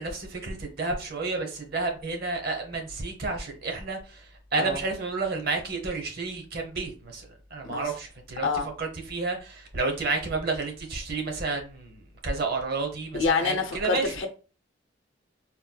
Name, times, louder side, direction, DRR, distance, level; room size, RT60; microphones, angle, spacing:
voice 1, 0.0-8.5 8.8-14.1, right 3 dB, 55° right, 0.8 m, -31 dB
voice 2, 13.1-14.3, left 4 dB, 75° left, 0.6 m, -27 dB
4.2 x 2.2 x 2.2 m
head